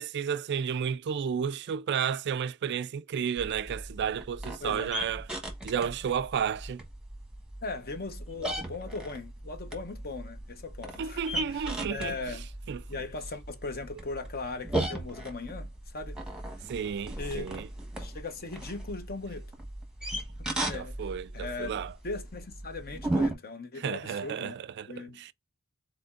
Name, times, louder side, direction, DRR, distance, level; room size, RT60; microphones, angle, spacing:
voice 1, 0.0-5.3 5.6-6.8 11.0-12.2 12.7-12.8 16.7-17.7 20.0-20.2 20.7-21.9 23.8-25.3, right 7 dB, 50° right, 0.3 m, -32 dB
sound 1, 3.4-23.3, right 1 dB, 5° right, 1.2 m, -37 dB
voice 2, 4.6-4.9 7.6-12.5 12.9-16.7 17.2-17.5 17.8-19.5 20.5-24.5 24.9-25.2, left 3 dB, 45° left, 1.0 m, -39 dB
5.0 x 4.1 x 2.5 m
head